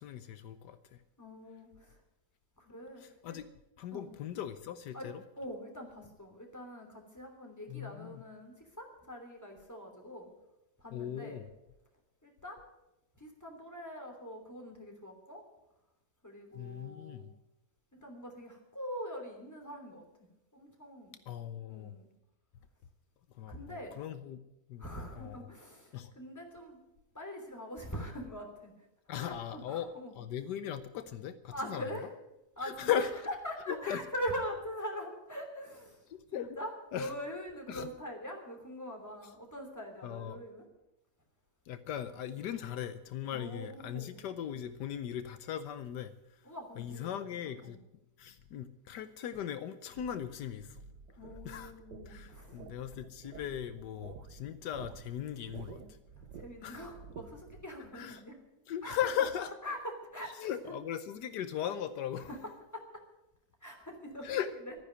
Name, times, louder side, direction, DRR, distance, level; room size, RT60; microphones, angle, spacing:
voice 1, 0.0-1.0 3.0-3.5 3.8-5.2 7.7-8.2 10.9-11.5 16.5-17.2 21.3-21.9 23.4-24.4 24.7-24.9 25.2-25.5 25.9-26.1 29.1-29.9 30.2-31.8 32.6-33.1 33.7-34.0 36.1-36.6 36.9-37.1 37.7-37.9 40.0-40.4 41.7-46.1 46.8-47.8 48.2-50.8 51.4-51.7 52.0-55.8 56.6-56.8 57.9-58.2 58.7-59.5 60.4-62.3 64.2-64.5, left 9 dB, 80° left, 12 dB, 1.3 m, -38 dB
voice 2, 1.2-2.0 2.6-3.4 3.9-4.1 4.9-5.1 5.4-10.3 10.8-11.4 12.2-12.7 13.2-15.4 16.2-17.3 17.9-21.2 21.7-22.1 23.5-24.0 24.8-26.8 27.1-28.7 29.2-30.2 31.5-32.1 32.6-36.1 36.3-40.6 43.3-44.2 46.4-47.1 47.4-47.8 51.2-52.6 56.1-58.4 58.8-59.0 59.6-60.8 62.2-62.4 62.7-62.8 63.6-64.4 64.6-64.7, equal, 10° left, 2 dB, 3.1 m, -43 dB
sound 1, 50.0-57.7, right 5 dB, 80° right, 1.5 m, -51 dB
13.0 x 9.9 x 9.2 m, 0.91 s
omnidirectional pair, 1.8 m